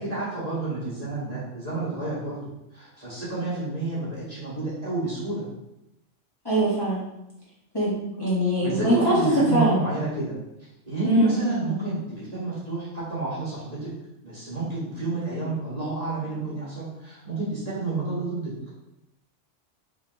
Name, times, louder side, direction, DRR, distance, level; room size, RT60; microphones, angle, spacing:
voice 1, 0.0-5.5 8.6-10.4 10.9-13.9 14.2-18.5, right 3 dB, 30° right, -9 dB, 1.6 m, -30 dB
voice 2, 6.4-7.0 7.7-9.2 9.5-9.8 11.0-11.3, right 1 dB, 20° left, -9 dB, 1.3 m, -22 dB
5.3 x 3.3 x 3.0 m, 0.87 s
omnidirectional pair, 1.3 m